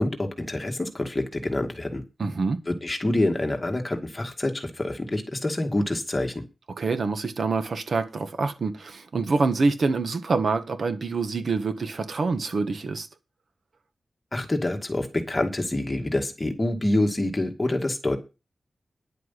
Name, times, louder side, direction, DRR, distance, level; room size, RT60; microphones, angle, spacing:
voice 1, 0.0-2.0 2.7-6.4 14.3-18.2, left 1 dB, 20° left, 2.2 m, -26 dB
voice 2, 2.2-2.6 6.8-13.1, right 4 dB, 65° right, 1.6 m, -26 dB
10.5 x 8.2 x 5.9 m
wide cardioid pair, 115°, 0 cm